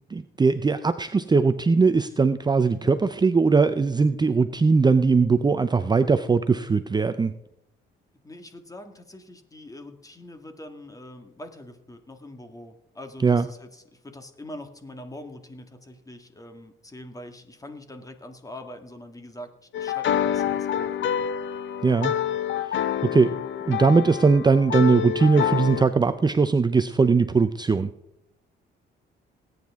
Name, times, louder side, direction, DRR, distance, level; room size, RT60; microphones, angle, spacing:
voice 1, 0.1-7.3 13.2-13.5 21.8-22.1 22.6-22.8 23.0-23.3 23.7-27.9, right 4 dB, 20° right, 11 dB, 0.5 m, -20 dB
voice 2, 8.2-21.3, left 1 dB, 15° left, 7 dB, 1.8 m, -43 dB
sound 1, 19.7-25.8, left 10 dB, 70° left, 0.7 m, -27 dB
18.5 x 9.5 x 3.6 m, 0.80 s
cardioid pair, 90°, 20 cm